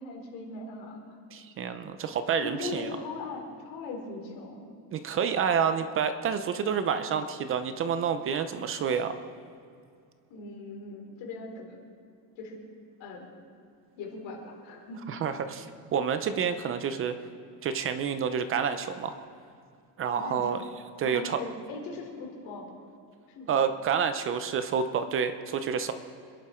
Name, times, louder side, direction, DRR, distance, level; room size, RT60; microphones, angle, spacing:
voice 1, 0.0-1.2 2.4-4.7 10.3-11.8 12.4-12.6 13.0-13.3 14.0-15.1 20.1-20.7 21.0-22.7 23.3-23.5, left 3 dB, 75° left, 1 dB, 3.9 m, -39 dB
voice 2, 1.3-3.0 4.9-9.1 15.1-15.7 15.9-17.1 17.6-19.2 20.0-20.6 21.0-21.4 23.5-25.9, right 7 dB, 30° right, 9 dB, 0.6 m, -28 dB
27.0 x 11.0 x 4.4 m, 2.3 s
cardioid pair, 180°, 42 cm